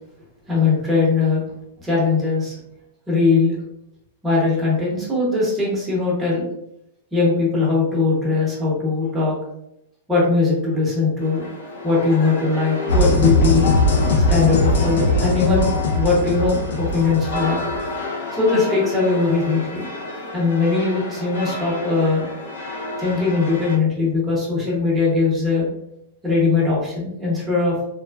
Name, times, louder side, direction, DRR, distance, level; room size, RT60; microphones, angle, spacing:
voice 1, 0.5-1.4 1.8-2.6 3.1-3.6 4.2-6.5 7.1-9.4 10.1-11.5 11.8-13.6 14.1-15.7 15.9-17.6 18.3-19.9 20.3-22.2 23.0-25.7 26.2-27.9, left 4 dB, 5° right, -6 dB, 0.8 m, -20 dB
sound 1, 11.2-23.8, left 2 dB, 85° left, 0.9 m, -31 dB
sound 2, 12.9-17.8, left 2 dB, 70° left, 0.5 m, -20 dB
3.1 x 2.1 x 2.2 m, 0.80 s
supercardioid pair, 170°, 0 cm